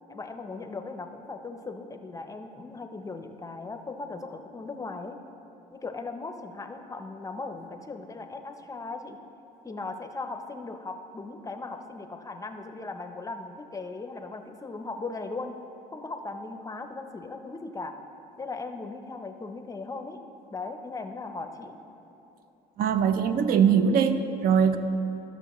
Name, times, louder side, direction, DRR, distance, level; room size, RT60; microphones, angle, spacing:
voice 1, 0.1-5.2 5.7-9.2 9.6-15.5 15.9-18.0 18.4-20.2 20.5-21.7, left 3 dB, 20° left, 6 dB, 0.5 m, -38 dB
voice 2, 22.8-24.8, right 7 dB, 60° right, 10 dB, 0.5 m, -22 dB
13.0 x 6.5 x 3.0 m, 2.9 s
cardioid pair, 110°, 17 cm